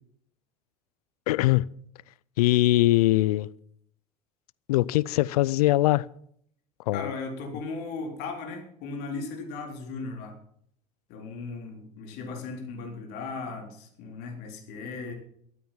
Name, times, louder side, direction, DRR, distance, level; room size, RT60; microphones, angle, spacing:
voice 1, 1.3-1.7 2.4-3.5 4.7-6.1 6.9-7.1, left 17 dB, 75° left, 0.5 m, -22 dB
voice 2, 6.9-10.4 11.1-15.1, left 4 dB, 60° left, 3.7 m, -37 dB
13.5 x 9.1 x 7.4 m
hypercardioid pair, 80°, 20 cm